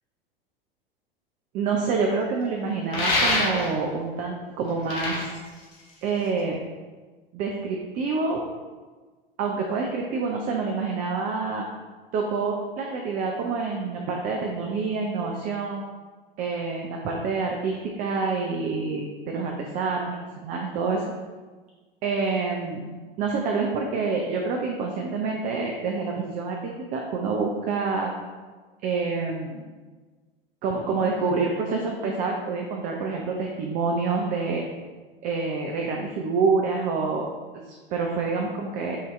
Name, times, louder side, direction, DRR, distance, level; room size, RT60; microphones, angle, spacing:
voice 1, 1.5-5.2 6.0-6.6 7.3-8.4 9.4-11.7 12.1-15.8 16.4-21.0 22.0-22.8 23.2-28.1 28.8-29.6 30.6-34.6 35.2-39.0, right 4 dB, 30° right, 1 dB, 0.4 m, -27 dB
sound 1, 2.9-3.9 4.7-6.4, left 2 dB, 45° left, 1.2 m, -26 dB
5.6 x 2.7 x 3.0 m, 1.4 s
figure-of-eight pair, 85°, 29 cm